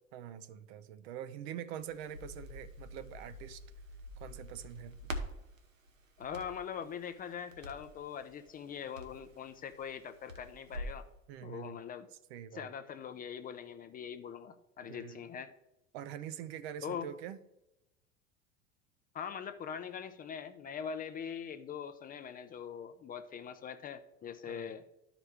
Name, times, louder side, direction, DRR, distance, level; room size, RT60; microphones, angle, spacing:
voice 1, 0.1-3.6 4.2-5.1 11.3-11.8 12.3-12.7 14.8-15.2 15.9-17.4 24.5-24.8, right 10 dB, 55° right, 12 dB, 0.7 m, -45 dB
Crackle, 1.8-11.0, equal, 85° right, 1.0 m, -47 dB
voice 2, 6.2-11.0 11.4-12.1 12.5-15.5 16.8-17.1 19.1-24.8, left 7 dB, 25° left, 9 dB, 0.5 m, -42 dB
13.0 x 5.0 x 3.3 m, 0.91 s
figure-of-eight pair, 80°, 38 cm